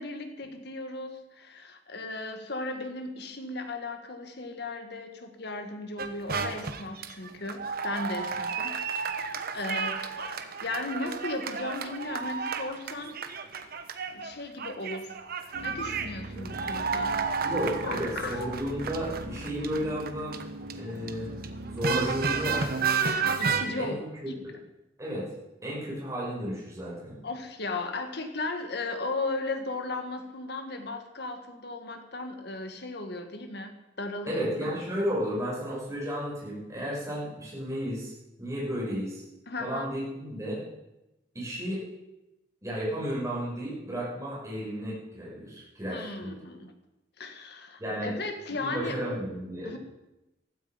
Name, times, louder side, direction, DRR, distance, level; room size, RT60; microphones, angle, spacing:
voice 1, 0.0-8.8 9.5-13.2 14.1-15.2 15.6-17.2 17.8-18.4 20.8-20.9 23.4-23.9 24.3-24.5 27.2-34.7 39.5-39.9 45.9-46.7 47.2-49.0 49.6-49.8, left 2 dB, 60° left, 6 dB, 1.8 m, -36 dB
sound 1, 6.0-14.3 14.6-21.1 21.4-23.6, right 5 dB, 55° right, 1.1 m, -31 dB
sound 2, 15.5-22.7, right 1 dB, 85° right, 2.4 m, -41 dB
voice 2, 17.4-20.4 20.8-21.3 21.6-22.7 23.8-24.1 25.0-25.3 25.6-27.2 34.3-38.1 38.4-39.2 39.6-40.6 41.3-41.8 42.6-46.3 47.8-48.1 48.6-49.8, equal, 15° right, -6 dB, 6.7 m, -33 dB
15.5 x 13.0 x 5.2 m, 0.96 s
head